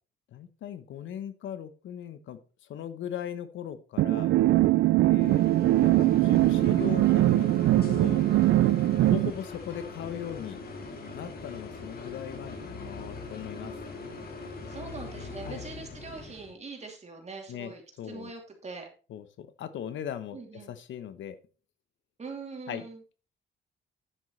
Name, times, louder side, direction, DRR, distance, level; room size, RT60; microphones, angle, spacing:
voice 1, 0.3-2.4 2.7-4.3 5.0-7.5 7.8-8.2 9.0-10.6 11.1-13.7 15.4-15.6 17.5-17.7 18.0-18.3 19.1-20.4 20.7-21.4 22.7-22.8, left 9 dB, 75° left, 12 dB, 1.0 m, -38 dB
sound 1, 4.0-9.3, right 15 dB, 75° right, 0.4 m, -22 dB
sound 2, 5.2-16.5, left 3 dB, 50° left, 2.4 m, -41 dB
voice 2, 14.7-18.9 20.3-20.7 22.2-23.0, right 4 dB, 35° right, 3 dB, 3.0 m, -42 dB
10.0 x 7.4 x 3.2 m, 0.36 s
cardioid pair, 90°, 20 cm